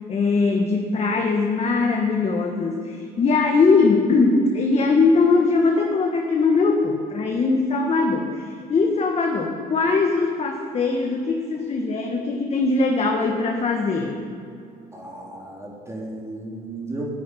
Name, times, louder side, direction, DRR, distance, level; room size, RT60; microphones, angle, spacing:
voice 1, 0.1-14.2, left 4 dB, 40° left, 3 dB, 1.5 m, -21 dB
voice 2, 14.9-17.1, right 2 dB, 15° right, -3 dB, 3.3 m, -34 dB
11.5 x 11.0 x 10.0 m, 2.6 s
cardioid pair, 110°, 17 cm